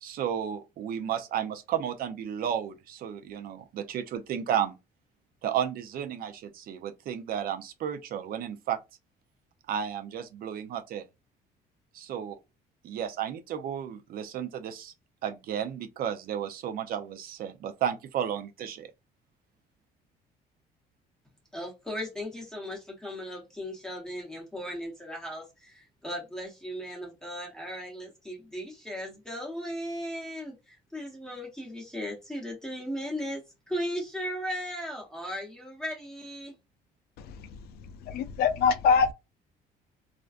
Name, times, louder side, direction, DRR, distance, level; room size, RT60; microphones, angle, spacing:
voice 1, 0.0-4.8 5.4-8.8 9.7-11.1 11.9-12.4 12.8-14.9 15.2-18.9, right 9 dB, 60° right, 0.5 m, -33 dB
voice 2, 21.5-33.4 33.7-36.5, equal, 5° left, 0.9 m, -37 dB
voice 3, 37.2-37.6 38.1-39.1, left 6 dB, 70° left, 0.4 m, -24 dB
2.4 x 2.2 x 2.4 m
cardioid pair, 110°, 17 cm